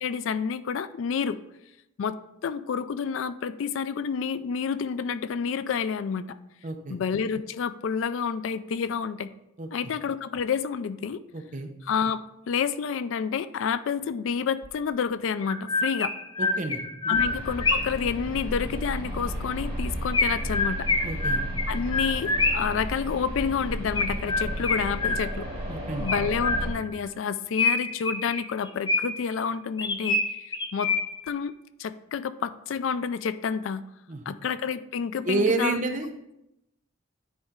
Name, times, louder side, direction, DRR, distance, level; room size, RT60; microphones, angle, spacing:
voice 1, 0.0-1.4 2.0-2.2 2.4-6.4 6.9-9.3 9.7-11.2 11.8-12.2 12.5-16.1 17.1-20.9 21.7-25.5 26.0-30.5 30.7-30.9 31.3-31.5 31.8-33.8 34.3-35.8, left 6 dB, 70° left, 14 dB, 0.3 m, -29 dB
voice 2, 6.6-7.0 9.6-9.9 11.3-11.7 16.4-17.2 21.0-21.4 25.7-26.1 34.1-34.4 35.2-36.1, right 3 dB, 35° right, 5 dB, 0.7 m, -29 dB
Chirp tweet, 14.6-14.7 15.4-18.0 20.1-22.8 24.0-25.5 26.1-27.0 27.6-29.3 29.8-31.3, left 3 dB, 20° left, 0.6 m, -27 dB
sound 1, 17.1-26.7, equal, 20° right, 2.7 m, -33 dB
9.6 x 4.1 x 3.6 m, 0.86 s
head